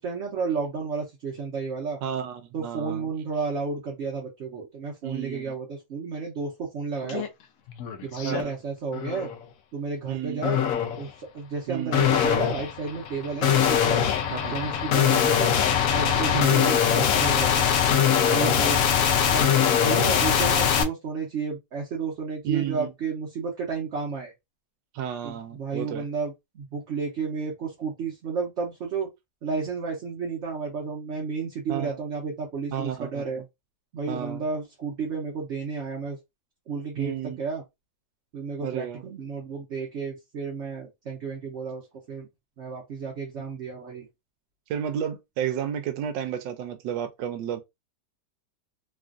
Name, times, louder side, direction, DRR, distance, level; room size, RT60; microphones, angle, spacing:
voice 1, 0.0-2.0 2.5-7.2 8.0-9.3 9.7-10.6 11.0-14.1 14.5-17.7 18.2-18.8 19.1-19.5 19.8-24.3 25.2-29.1 29.4-33.4 33.9-36.2 36.7-37.6 38.3-42.3 42.6-44.1, right 5 dB, 55° right, 0.9 m, -32 dB
voice 2, 2.0-3.1 5.0-5.5 7.0-7.3 8.2-8.5 10.1-10.4 11.7-11.9 14.3-14.5 16.3-16.6 18.4-18.7 22.4-22.9 24.9-26.1 31.7-32.0 32.7-33.2 34.1-34.4 37.0-37.4 38.6-39.0 44.7-47.6, right 9 dB, 90° right, 1.3 m, -32 dB
sound 1, 7.1-7.3 7.7-8.4 8.9-9.4 10.4-11.0 11.9-20.8, left 8 dB, 70° left, 0.8 m, -22 dB
3.2 x 2.4 x 2.4 m
omnidirectional pair, 1.9 m